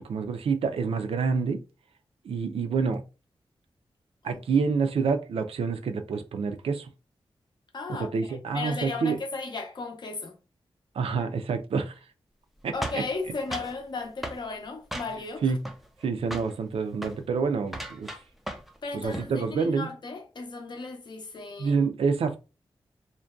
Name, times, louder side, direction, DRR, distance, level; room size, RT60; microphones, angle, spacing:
voice 1, 0.0-1.6 2.2-3.0 4.2-6.9 7.9-9.2 10.9-12.0 12.6-13.0 15.4-15.7 16.0-18.1 18.9-19.9 21.6-22.4, right 5 dB, 80° right, 0.4 m, -27 dB
voice 2, 7.7-10.3 12.7-15.6 18.8-21.8, left 3 dB, 50° left, 0.5 m, -35 dB
sound 1, 12.8-13.8 14.2-14.4 14.9-15.4 15.6-16.1 16.3-16.6 16.9-17.2 17.7-18.8 19.0-19.3, equal, ahead, 0.3 m, -36 dB
2.5 x 2.1 x 2.3 m
wide cardioid pair, 130°, 10 cm